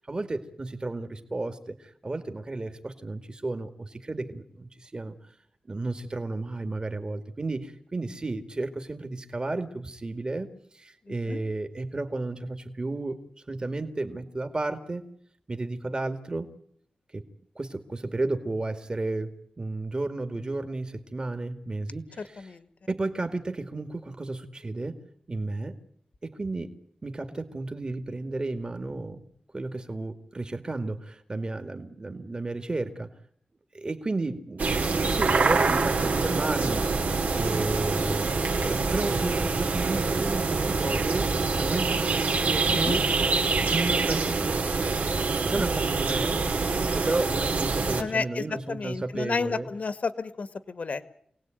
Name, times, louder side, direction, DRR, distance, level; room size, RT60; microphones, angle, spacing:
voice 1, 0.1-5.2 5.7-10.5 10.7-13.2 13.5-15.0 15.5-16.5 17.1-17.3 17.6-22.5 22.9-25.0 25.3-25.8 26.2-26.7 27.0-29.2 29.5-33.1 33.7-36.9 37.3-43.0 43.7-44.5 45.4-49.7, right 2 dB, 30° right, 8 dB, 2.3 m, -33 dB
voice 2, 11.1-11.4 22.2-22.6 42.8-43.0 48.0-51.1, left 4 dB, 55° left, 12 dB, 1.8 m, -32 dB
sound 1, 34.6-48.0, right 4 dB, 75° right, 2.7 m, -25 dB
27.0 x 18.5 x 9.1 m, 0.66 s
wide cardioid pair, 115°, 3 cm